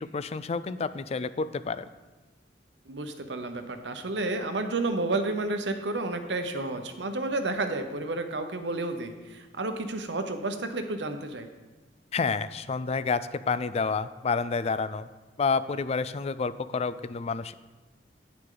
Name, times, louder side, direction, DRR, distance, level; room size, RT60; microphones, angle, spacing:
voice 1, 0.0-1.8 12.1-13.2 13.5-15.1 15.4-17.5, left 4 dB, 35° left, 14 dB, 0.4 m, -29 dB
voice 2, 2.9-11.5, right 2 dB, 90° right, 7 dB, 1.0 m, -31 dB
9.6 x 8.7 x 3.9 m, 1.2 s
head